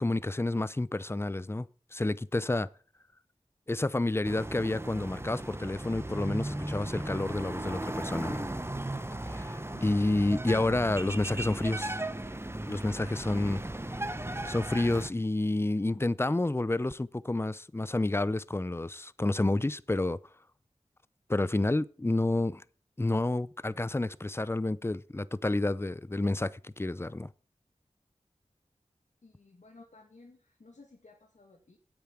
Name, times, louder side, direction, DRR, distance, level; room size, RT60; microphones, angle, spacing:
voice 1, 0.0-1.7 1.9-2.7 3.7-8.5 9.3-12.0 12.7-13.6 14.4-20.2 21.3-22.6 23.0-27.3, left 2 dB, 20° left, 0.6 m, -29 dB
sound 1, 4.2-15.1, right 1 dB, 20° right, 1.2 m, -36 dB
voice 2, 29.2-31.8, left 3 dB, 75° left, 2.4 m, -55 dB
9.4 x 8.5 x 7.4 m
wide cardioid pair, 50°, 13 cm